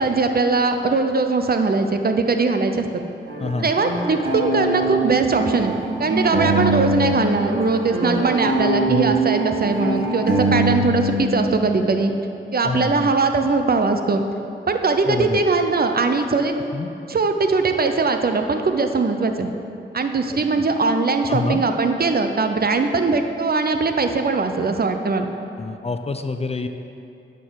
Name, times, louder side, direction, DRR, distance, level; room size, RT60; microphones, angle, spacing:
voice 1, 0.0-2.9 3.6-12.1 12.5-14.2 14.7-16.6 17.1-19.5 19.9-25.3, right 3 dB, 50° right, 6 dB, 0.6 m, -20 dB
sound 1, 3.3-7.2 7.4-11.2, right 2 dB, 75° right, 1.5 m, -22 dB
voice 2, 12.6-13.1 15.1-15.4 16.7-16.9 20.3-20.4 21.3-21.6 25.6-26.7, left 3 dB, 30° left, 8 dB, 0.4 m, -26 dB
9.1 x 4.6 x 4.6 m, 2.8 s
cardioid pair, 50°, 21 cm